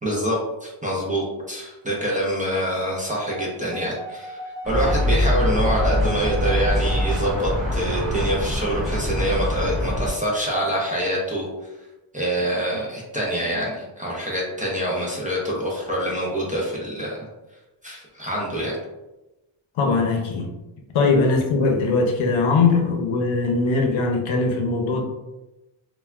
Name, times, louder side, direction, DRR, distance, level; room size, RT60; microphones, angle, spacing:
voice 1, 0.0-11.5 12.1-17.3 17.8-18.7, right 1 dB, 15° right, -4 dB, 0.4 m, -25 dB
sound 1, 3.3-7.3, right 1 dB, 85° right, 0.6 m, -37 dB
sound 2, 4.6-10.1, left 1 dB, ahead, 1.1 m, -23 dB
voice 2, 19.8-20.5 20.9-25.0, left 3 dB, 70° left, 3 dB, 0.7 m, -20 dB
3.2 x 2.2 x 2.2 m, 1.0 s
wide cardioid pair, 145°, 49 cm